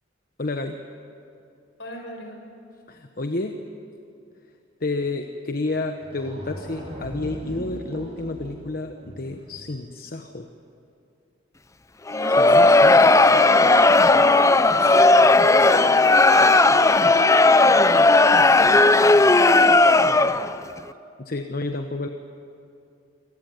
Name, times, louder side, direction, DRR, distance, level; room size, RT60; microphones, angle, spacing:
voice 1, 0.4-0.8 2.9-3.6 4.8-10.5 12.4-13.0 21.2-22.1, left 2 dB, 45° left, 5 dB, 1.1 m, -30 dB
voice 2, 1.8-2.4 12.1-13.6 13.9-19.2, equal, 70° left, 3 dB, 5.7 m, -39 dB
sound 1, 5.7-5.8 6.0-9.8, equal, 30° right, 7.3 m, -39 dB
Crowd, 12.1-20.6, left 2 dB, 15° left, 0.5 m, -15 dB
26.5 x 17.5 x 9.4 m, 2.5 s
head